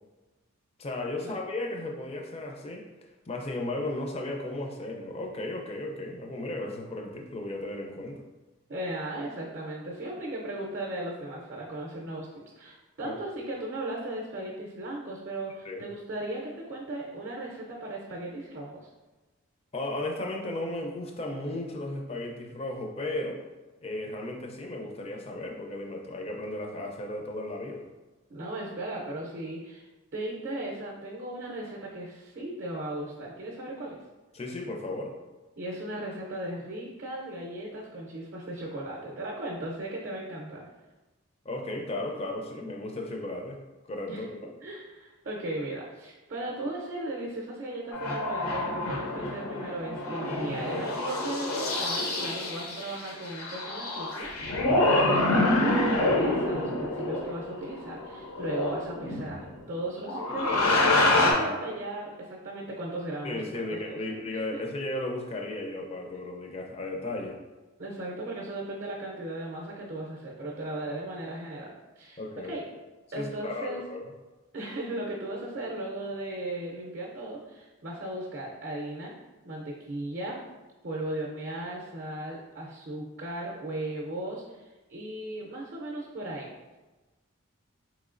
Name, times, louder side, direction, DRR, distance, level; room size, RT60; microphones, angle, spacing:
voice 1, 0.8-2.9 3.3-8.2 13.0-13.2 15.6-15.8 19.7-23.4 23.8-27.9 34.3-35.1 41.4-43.6 43.9-44.5 63.2-67.4 72.2-72.5 73.2-74.1, left 2 dB, 25° left, 2 dB, 0.4 m, -35 dB
voice 2, 8.7-12.3 12.6-18.9 28.3-29.9 30.1-34.0 35.6-40.7 44.1-44.3 44.6-63.6 63.9-64.1 67.8-72.6 73.1-73.8 74.5-79.1 79.4-80.4 80.8-86.5, right 1 dB, 45° right, -2 dB, 0.5 m, -37 dB
sound 1, 47.9-59.5 60.0-61.3, left 2 dB, 85° left, 0.7 m, -27 dB
4.3 x 3.0 x 2.4 m, 1.2 s
head